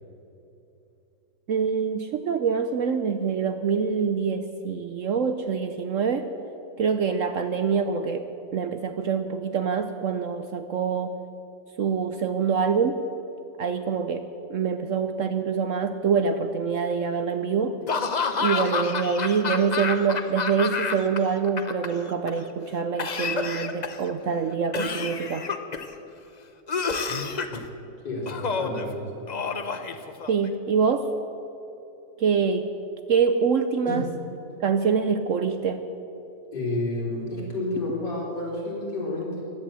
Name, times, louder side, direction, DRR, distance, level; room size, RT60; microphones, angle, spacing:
voice 1, 1.5-6.3 6.8-8.3 8.5-11.1 11.8-13.0 13.6-17.8 18.4-25.4 30.3-31.1 32.2-32.7 33.1-34.1 34.6-35.8, right 6 dB, 60° right, 9 dB, 0.9 m, -25 dB
Laughter / Cough, 17.9-21.2 21.4-22.3 23.0-24.1 24.7-25.9 26.7-27.6 28.3-28.8 29.3-30.5, left 5 dB, 40° left, 0.6 m, -29 dB
voice 2, 28.0-29.1 33.9-34.0 36.5-39.5, left 2 dB, 75° left, -4 dB, 4.6 m, -30 dB
16.0 x 11.0 x 7.6 m, 2.9 s
omnidirectional pair, 1.8 m